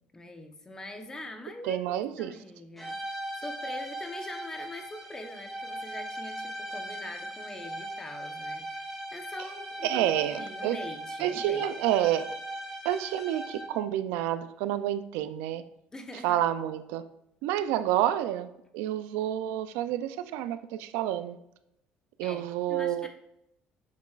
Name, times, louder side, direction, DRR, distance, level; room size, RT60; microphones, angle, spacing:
voice 1, 0.1-11.7 15.9-16.4 22.2-22.4 22.7-23.1, left 2 dB, 20° left, 5 dB, 0.9 m, -43 dB
voice 2, 1.6-2.4 9.8-10.8 11.2-12.3 12.8-15.6 16.2-17.1 17.4-21.4 22.2-23.1, right 12 dB, 90° right, 12 dB, 0.4 m, -29 dB
sound 1, 2.8-13.9, right 1 dB, ahead, 2.1 m, -39 dB
7.2 x 6.0 x 2.4 m, 0.81 s
cardioid pair, 105°, 4 cm